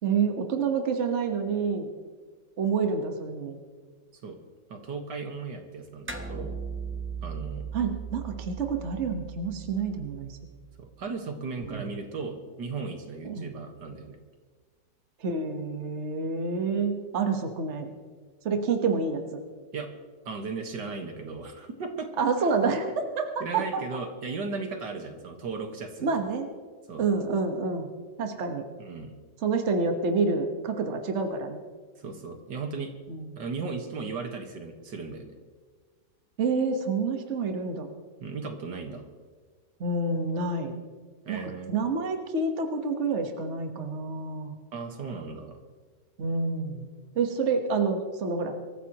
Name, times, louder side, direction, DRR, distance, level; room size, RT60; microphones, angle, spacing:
voice 1, 0.0-1.9 2.6-3.6 7.7-10.4 11.7-11.9 13.2-13.5 15.2-17.9 18.4-19.4 22.2-23.6 26.0-26.5 27.0-27.9 28.2-28.6 29.4-31.6 33.1-33.4 36.4-37.9 39.8-40.8 41.3-44.5 46.2-46.9 47.1-48.5, right 4 dB, 40° right, 4 dB, 1.5 m, -28 dB
voice 2, 4.7-6.6 7.2-7.6 10.8-14.2 19.7-19.9 20.2-22.1 23.4-26.1 26.9-27.0 28.8-29.1 32.0-32.9 33.4-35.3 38.2-39.1 41.3-41.7 44.7-45.6, right 4 dB, 70° right, 4 dB, 2.1 m, -36 dB
sound 1, 6.1-10.8, right 6 dB, 10° right, 0.8 m, -38 dB
24.5 x 14.5 x 3.0 m, 1.5 s
omnidirectional pair, 1.9 m